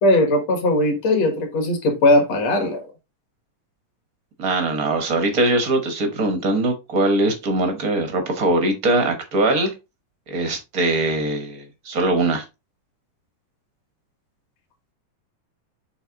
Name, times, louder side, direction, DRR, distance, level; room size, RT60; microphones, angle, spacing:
voice 1, 0.0-2.8, left 1 dB, 55° left, 2.6 m, -19 dB
voice 2, 4.4-9.7 10.3-12.4, right 2 dB, 75° right, 0.8 m, -21 dB
8.1 x 3.9 x 3.8 m
omnidirectional pair, 3.8 m